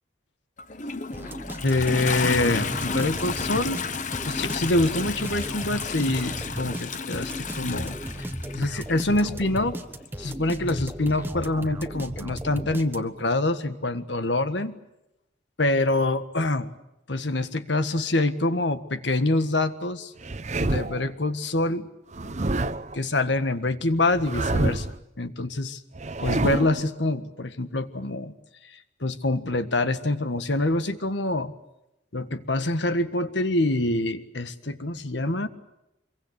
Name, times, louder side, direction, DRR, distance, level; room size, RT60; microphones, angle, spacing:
Toilet flush, 0.6-9.0 10.0-10.1, left 5 dB, 40° left, 1.0 m, -32 dB
sound 1, 1.1-13.3, right 1 dB, 10° right, 1.3 m, -35 dB
voice 1, 1.6-3.8 4.2-8.3 8.5-9.8 10.2-14.7 15.6-16.7 17.1-20.1 20.6-21.9 22.9-24.9 25.2-25.8 26.2-28.3 29.0-31.5 32.1-35.5, left 2 dB, 75° left, 11 dB, 1.6 m, -25 dB
sound 2, 20.2-21.1 22.1-23.0 24.1-25.0 25.9-26.8, right 2 dB, 40° right, 0.9 m, -27 dB
25.5 x 23.0 x 8.4 m, 0.89 s
head